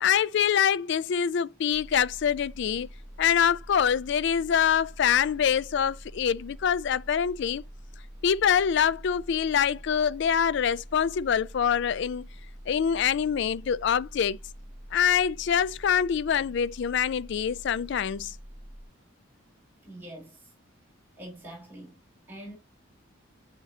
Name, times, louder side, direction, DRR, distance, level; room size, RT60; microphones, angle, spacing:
voice 1, 0.0-2.9 3.2-7.6 8.2-12.3 12.7-14.4 14.9-18.4, left 8 dB, 60° left, 0.3 m, -25 dB
sound 1, 1.7-18.9, equal, 30° left, 3.3 m, -46 dB
voice 2, 19.8-20.5 21.2-22.0 22.3-22.6, right 1 dB, 10° right, 3.3 m, -44 dB
9.0 x 4.4 x 2.7 m
head